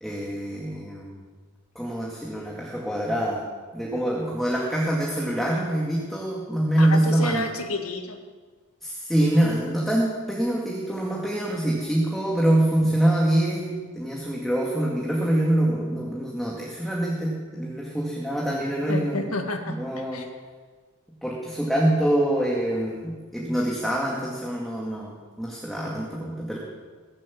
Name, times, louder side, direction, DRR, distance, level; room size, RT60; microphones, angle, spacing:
voice 1, 0.0-1.2 1.8-3.4 3.7-7.5 8.8-19.3 19.6-20.2 21.2-26.6, right 1 dB, ahead, -4 dB, 2.2 m, -25 dB
voice 2, 6.8-8.2 18.9-19.7 20.1-20.3, left 2 dB, 70° left, 4 dB, 2.1 m, -30 dB
21.5 x 7.6 x 7.2 m, 1.4 s
head